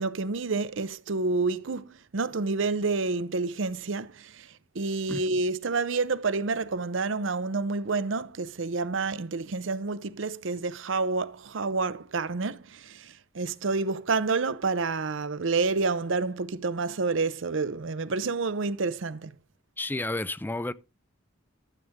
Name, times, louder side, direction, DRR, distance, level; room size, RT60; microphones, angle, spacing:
voice 1, 0.0-4.5 4.7-19.3, right 3 dB, 70° right, 0.7 m, -29 dB
voice 2, 19.8-20.7, left 2 dB, 10° left, 0.5 m, -31 dB
12.5 x 7.7 x 3.6 m
head